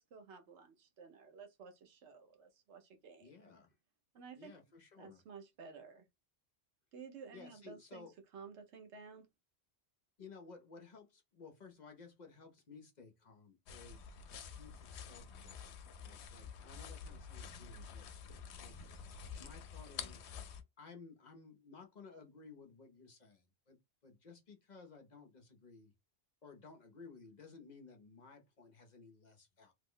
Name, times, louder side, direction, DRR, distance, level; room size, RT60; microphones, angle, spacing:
voice 1, 0.0-3.4 4.1-4.5 5.0-6.0 6.9-8.1 8.3-9.3, right 5 dB, 90° right, 1.1 m, -53 dB
voice 2, 3.2-3.7 4.4-5.2 7.3-8.1 10.2-15.6 16.0-18.1 18.6-18.8 19.4-20.4 20.8-25.9 26.4-29.7, left 4 dB, 50° left, 0.7 m, -56 dB
sound 1, 13.7-20.6, left 6 dB, 80° left, 0.8 m, -49 dB
3.0 x 2.0 x 3.6 m
omnidirectional pair, 1.1 m